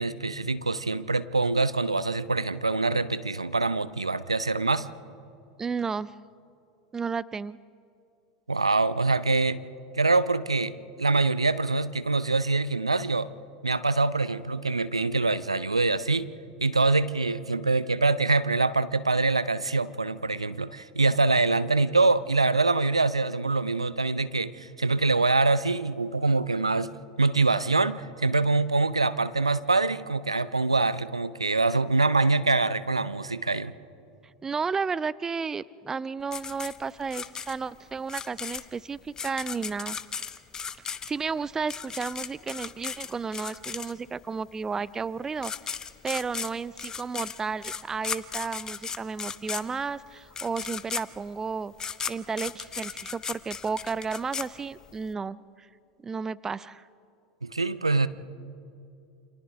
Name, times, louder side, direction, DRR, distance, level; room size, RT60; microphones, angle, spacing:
voice 1, 0.0-4.9 8.5-9.6 9.9-13.3 13.6-16.3 16.6-26.9 27.2-33.7 57.4-58.1, right 3 dB, 85° right, 16 dB, 0.5 m, -24 dB
voice 2, 5.6-6.1 6.9-7.6 34.4-40.0 41.1-45.8 46.0-51.7 52.1-55.7 56.0-56.8, right 5 dB, 15° right, 20 dB, 0.4 m, -32 dB
sound 1, 36.3-44.2 45.1-45.2 45.4-55.1, left 6 dB, 20° left, 0.8 m, -36 dB
29.5 x 27.0 x 3.5 m, 2.5 s
figure-of-eight pair, 85°, 3 cm